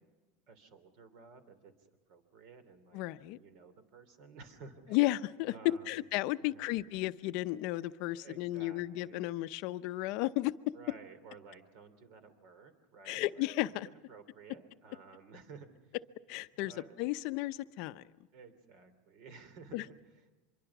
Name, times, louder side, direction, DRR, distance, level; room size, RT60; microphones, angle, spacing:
voice 1, 0.5-3.0 3.3-5.0 5.5-6.1 6.4-6.7 8.1-9.3 10.7-13.5 14.1-16.0 16.6-17.0 18.3-20.0, right 4 dB, 55° right, 11 dB, 3.1 m, -54 dB
voice 2, 2.9-3.4 4.9-10.5 13.1-13.9 16.3-18.0 19.7-19.8, left 17 dB, 55° left, 12 dB, 0.7 m, -33 dB
25.0 x 22.5 x 6.0 m, 1.2 s
supercardioid pair, 140°, 0 cm